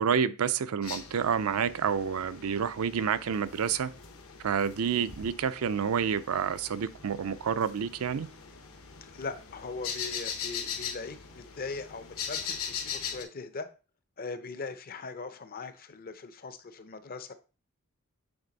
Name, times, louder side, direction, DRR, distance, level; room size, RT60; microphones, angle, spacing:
voice 1, 0.0-3.9 4.4-8.3, right 7 dB, 75° right, 0.4 m, -29 dB
sound 1, 0.8-13.2, left 7 dB, 65° left, 1.0 m, -41 dB
voice 2, 9.0-13.7 14.2-17.3, left 4 dB, 40° left, 0.6 m, -40 dB
8.7 x 3.4 x 4.0 m
head